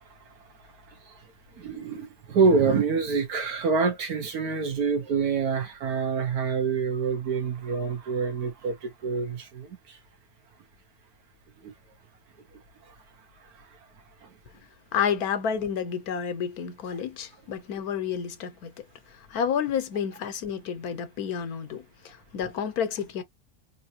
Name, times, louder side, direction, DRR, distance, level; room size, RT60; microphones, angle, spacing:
voice 1, 1.6-10.0 11.6-11.7, right 5 dB, 90° right, 1.6 m, -26 dB
voice 2, 14.9-23.2, left 7 dB, 85° left, 1.3 m, -30 dB
3.9 x 2.7 x 2.8 m
omnidirectional pair, 1.6 m